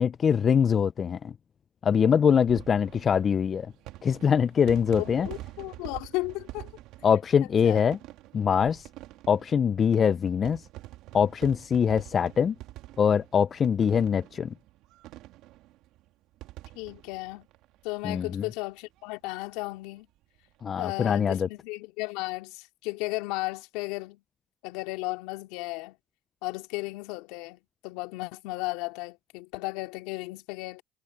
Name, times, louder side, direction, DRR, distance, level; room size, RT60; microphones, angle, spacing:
voice 1, 0.0-1.3 1.8-3.7 4.0-5.3 7.0-8.0 8.3-8.9 9.3-10.6 11.1-12.5 13.0-14.5 18.0-18.4 20.6-21.5, left 7 dB, 40° left, 0.5 m, -23 dB
sound 1, 2.3-18.4 18.7-18.8 19.0-19.1 20.4-20.6, right 16 dB, 70° right, 3.0 m, -46 dB
voice 2, 5.0-6.7 7.6-7.8 16.7-17.5 17.8-20.1 20.7-24.2 24.6-26.0 26.4-30.8, left 23 dB, 80° left, 2.8 m, -35 dB
hypercardioid pair, 70°, 0 cm